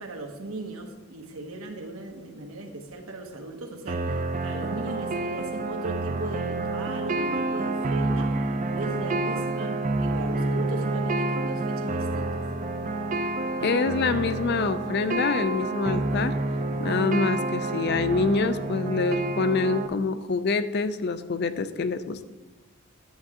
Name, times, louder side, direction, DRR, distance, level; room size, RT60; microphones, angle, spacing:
voice 1, 0.0-8.3 8.7-12.4, right 2 dB, 85° right, 2 dB, 1.3 m, -38 dB
sound 1, 3.9-19.9, right 2 dB, 35° right, 0.5 m, -28 dB
voice 2, 13.6-16.4 16.8-22.3, left 4 dB, 50° left, 12 dB, 0.4 m, -26 dB
10.0 x 7.8 x 3.7 m, 1.2 s
head